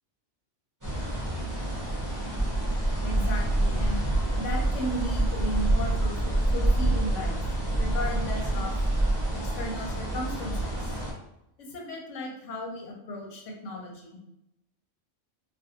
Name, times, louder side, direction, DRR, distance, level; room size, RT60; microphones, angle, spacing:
sound 1, 0.8-11.1, right 1 dB, 20° right, 0.7 m, -27 dB
voice 1, 3.0-4.1 4.4-6.2 6.5-7.4 7.8-8.7 9.4-10.9 11.7-14.2, equal, 80° left, -1 dB, 1.0 m, -35 dB
2.5 x 2.3 x 2.7 m, 0.85 s
omnidirectional pair, 1.3 m